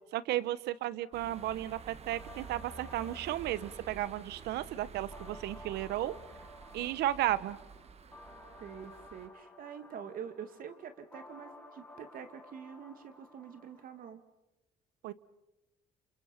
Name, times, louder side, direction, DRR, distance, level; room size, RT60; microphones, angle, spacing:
voice 1, 0.1-6.1 6.7-7.6 15.0-15.1, right 14 dB, 80° right, 18 dB, 1.0 m, -34 dB
sound 1, 1.1-9.3, right 5 dB, 40° right, 1.4 m, -50 dB
sound 2, 2.1-14.1, left 1 dB, 10° left, 3.4 m, -55 dB
voice 2, 8.6-14.2, right 7 dB, 60° right, 10 dB, 2.2 m, -46 dB
29.0 x 28.0 x 5.8 m, 0.94 s
cardioid pair, 110°, 17 cm